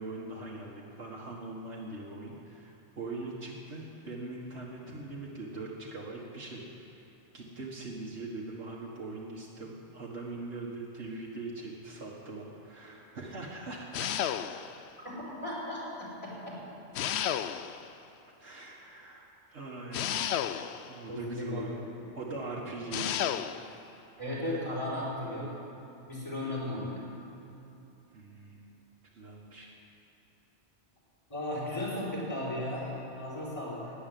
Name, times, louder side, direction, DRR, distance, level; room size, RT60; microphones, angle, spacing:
voice 1, 0.0-14.2 18.4-20.4 20.9-21.8 22.1-23.2 28.1-28.7 29.1-29.7, right 2 dB, 75° right, -4 dB, 1.8 m, -41 dB
sound 1, 13.9-14.8 17.0-17.9 19.9-21.0 22.9-23.7, left 10 dB, 75° left, 0.8 m, -32 dB
voice 2, 15.0-16.6 21.1-21.7 24.2-25.5 26.1-27.0 31.3-33.9, left 1 dB, 30° left, -6 dB, 4.3 m, -35 dB
12.0 x 9.7 x 9.1 m, 3.0 s
omnidirectional pair, 1.1 m